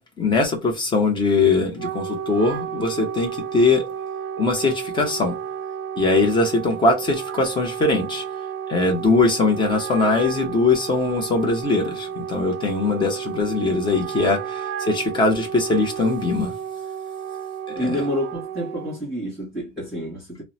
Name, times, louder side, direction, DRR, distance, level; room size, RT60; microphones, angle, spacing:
voice 1, 0.2-3.8 4.4-5.3 6.0-8.2 8.7-16.5 17.7-17.9, left 3 dB, 15° left, 0.6 m, -21 dB
Wind instrument woodwind instrument, 1.6-19.0, right 8 dB, 70° right, 0.5 m, -32 dB
voice 2, 17.8-20.4, equal, ahead, 1.5 m, -28 dB
2.9 x 2.0 x 2.6 m
cardioid pair, 160°, 29 cm